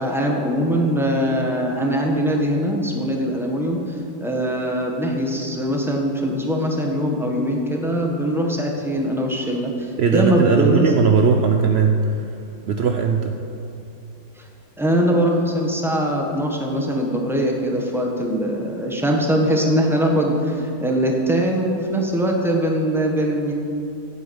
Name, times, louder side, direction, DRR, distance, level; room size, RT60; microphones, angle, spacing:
voice 1, 0.0-3.9 4.2-10.9 14.4-14.5 14.8-23.5, equal, ahead, 0 dB, 1.1 m, -22 dB
voice 2, 10.0-12.0 12.7-13.3, right 6 dB, 75° right, 4 dB, 0.5 m, -18 dB
9.5 x 8.3 x 8.1 m, 2.6 s
omnidirectional pair, 1.9 m